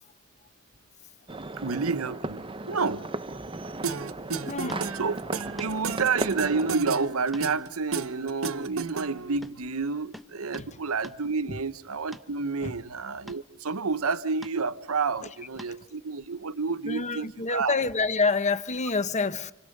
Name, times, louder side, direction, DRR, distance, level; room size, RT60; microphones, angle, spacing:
sound 1, 1.3-6.8, right 2 dB, 25° right, 0.9 m, -36 dB
voice 1, 1.6-3.1 5.0-5.2 5.6-17.8, right 4 dB, 90° right, 0.9 m, -29 dB
sound 2, 3.8-9.4, right 5 dB, 70° right, 1.1 m, -33 dB
voice 2, 4.5-5.0 10.6-10.7 11.5-11.6 12.6-12.8 15.7-15.8 16.8-19.5, left 4 dB, 35° left, 1.0 m, -28 dB
sound 3, 4.7-4.9 5.6-5.8 7.3-7.5 7.8-7.9 8.4-9.1 9.4-9.6 10.1-10.7 11.0-11.2 12.1-12.3 13.3-13.5 14.4-14.6 15.6-15.8 17.5-17.6, equal, ahead, 1.2 m, -46 dB
29.5 x 26.5 x 6.6 m
head